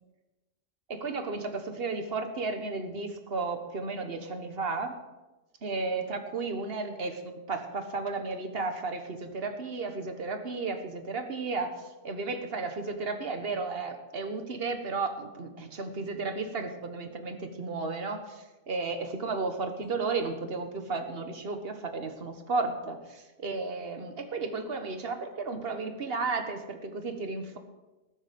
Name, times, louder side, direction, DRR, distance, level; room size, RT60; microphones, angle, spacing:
voice 1, 0.9-5.0 5.6-7.2 7.5-27.6, right 3 dB, 55° right, 6 dB, 1.6 m, -33 dB
19.5 x 7.4 x 5.3 m, 1.1 s
omnidirectional pair, 1.2 m